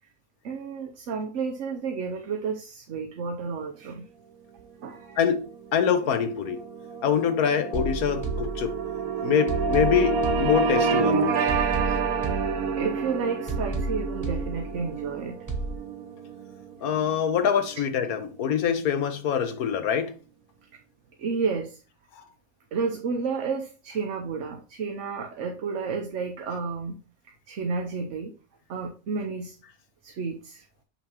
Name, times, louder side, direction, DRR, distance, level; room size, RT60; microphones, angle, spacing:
voice 1, 0.4-4.1 4.8-5.2 12.8-15.4 21.2-21.8 22.7-27.0 27.3-28.3 28.7-29.6 30.0-30.6, right 5 dB, 60° right, 1.0 m, -31 dB
sound 1, 5.2-17.8, right 5 dB, 80° right, 1.2 m, -29 dB
voice 2, 5.7-6.6 7.0-8.7 9.2-11.2 16.8-20.1, left 8 dB, 85° left, 1.4 m, -24 dB
sound 2, 7.7-9.0 9.5-11.0 11.5-13.0 13.5-15.0 15.5-15.7, right 2 dB, 15° right, 0.9 m, -32 dB
7.1 x 5.6 x 2.9 m
omnidirectional pair, 1.5 m